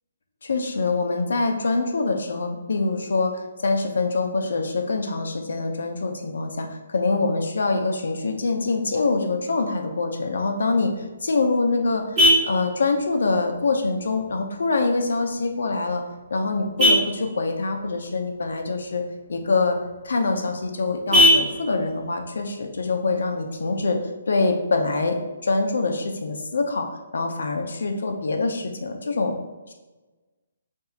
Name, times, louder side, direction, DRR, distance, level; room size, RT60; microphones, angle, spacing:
voice 1, 0.4-10.9 11.2-16.0 16.3-19.0 19.3-19.8 20.0-24.0 24.3-29.4, left 3 dB, 75° left, 3 dB, 0.6 m, -24 dB
Vehicle horn car horn honking, 10.9-23.9, equal, 15° right, 1.2 m, -26 dB
5.5 x 2.7 x 2.4 m, 1.2 s
hypercardioid pair, 155°, 0 cm